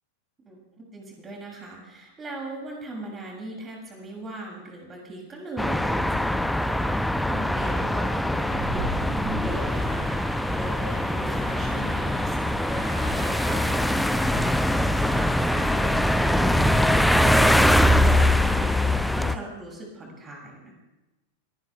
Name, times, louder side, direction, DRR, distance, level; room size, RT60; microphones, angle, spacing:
voice 1, 0.5-20.7, right 2 dB, 20° right, 0 dB, 7.2 m, -39 dB
sound 1, 5.6-19.4, left 1 dB, 5° left, 0.6 m, -23 dB
sound 2, 8.5-18.5, right 2 dB, 60° right, 4.4 m, -40 dB
28.5 x 19.0 x 2.4 m, 1.0 s
figure-of-eight pair, 90°, 0 cm